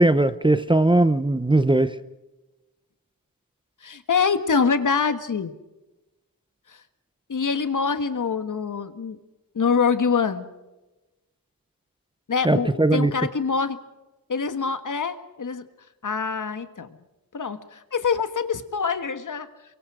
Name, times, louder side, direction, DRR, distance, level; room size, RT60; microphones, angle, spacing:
voice 1, 0.0-1.9 12.4-13.1, right 2 dB, 15° right, 13 dB, 0.8 m, -19 dB
voice 2, 3.8-5.5 7.3-9.2 9.5-10.5 12.3-13.8 14.3-15.6 16.0-16.9 17.3-19.5, left 5 dB, 60° left, 10 dB, 1.6 m, -25 dB
28.5 x 23.5 x 5.0 m, 1.0 s
wide cardioid pair, 130°, 35 cm